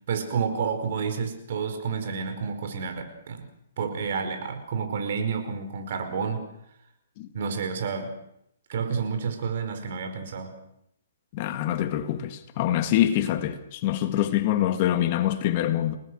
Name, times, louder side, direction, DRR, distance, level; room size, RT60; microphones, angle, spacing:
voice 1, 0.1-3.5 3.8-6.4 7.3-8.2 8.7-10.6, right 5 dB, 55° right, 4.9 m, -30 dB
voice 2, 11.3-16.0, left 12 dB, 35° left, 1.9 m, -25 dB
29.5 x 19.5 x 6.4 m
hypercardioid pair, 155°, 0 cm